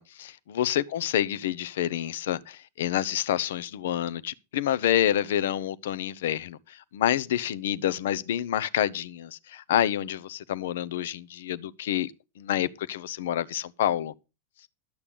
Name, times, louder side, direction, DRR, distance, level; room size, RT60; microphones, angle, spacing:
voice 1, 0.0-12.1 12.4-14.1, left 11 dB, 55° left, 0.8 m, -28 dB
12.5 x 8.4 x 5.2 m
figure-of-eight pair, 90°, 0 cm